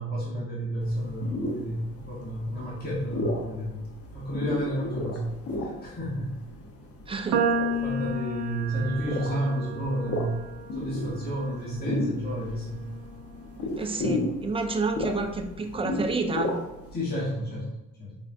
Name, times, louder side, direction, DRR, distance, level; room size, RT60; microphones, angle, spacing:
voice 1, 0.0-3.8 4.1-5.3 5.6-6.4 7.8-10.3 10.7-12.8 13.8-14.2 16.9-18.2, right 1 dB, 30° left, -6 dB, 1.1 m, -31 dB
sound 1, 0.8-16.9, left 2 dB, 50° left, 0.8 m, -34 dB
voice 2, 7.1-7.4 13.8-16.5, right 3 dB, 20° right, 4 dB, 0.4 m, -29 dB
sound 2, 7.3-13.7, right 2 dB, 85° right, 0.5 m, -32 dB
4.8 x 2.3 x 2.5 m, 1.0 s
cardioid pair, 90°, 30 cm